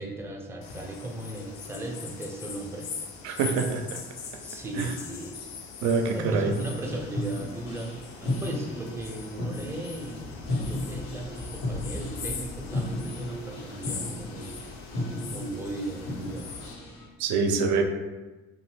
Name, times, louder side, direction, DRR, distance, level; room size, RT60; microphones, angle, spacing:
voice 1, 0.0-2.9 4.4-5.4 6.0-14.6 15.3-16.5, right 1 dB, 10° right, 0 dB, 0.5 m, -37 dB
sound 1, 0.6-16.7, left 5 dB, 55° left, 0.5 m, -41 dB
voice 2, 3.2-4.0 4.7-4.9 5.8-6.5 17.2-17.8, right 4 dB, 60° right, 5 dB, 0.5 m, -25 dB
sound 2, 6.4-17.1, left 1 dB, 70° left, 1.1 m, -35 dB
2.6 x 2.3 x 3.1 m, 1.2 s
hypercardioid pair, 55°, 32 cm